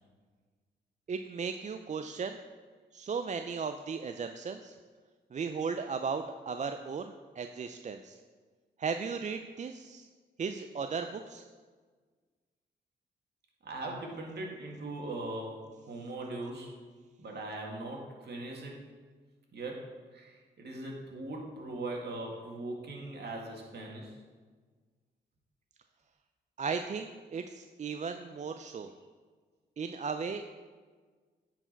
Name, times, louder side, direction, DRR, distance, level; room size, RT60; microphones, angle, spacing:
voice 1, 1.1-2.4 2.9-4.7 5.3-8.2 8.8-10.1 10.4-11.4 26.6-28.9 29.8-30.5, right 5 dB, 40° right, 8 dB, 0.4 m, -36 dB
voice 2, 13.6-16.7 17.2-18.8 19.5-24.2, right 2 dB, 60° right, -1 dB, 2.0 m, -40 dB
9.7 x 4.7 x 4.5 m, 1.5 s
supercardioid pair, 55°, 20 cm